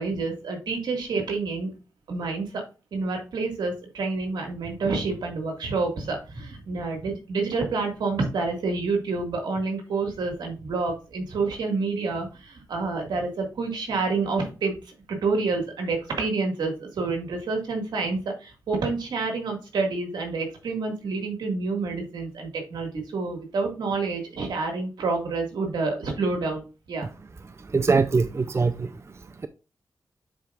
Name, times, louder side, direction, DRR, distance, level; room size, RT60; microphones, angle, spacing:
voice 1, 0.0-1.7 2.1-2.6 2.9-27.1, right 3 dB, 85° right, 2.0 m, -28 dB
voice 2, 27.7-28.9, right 4 dB, 40° right, 0.5 m, -22 dB
10.0 x 4.5 x 2.5 m
cardioid pair, 55°, 7 cm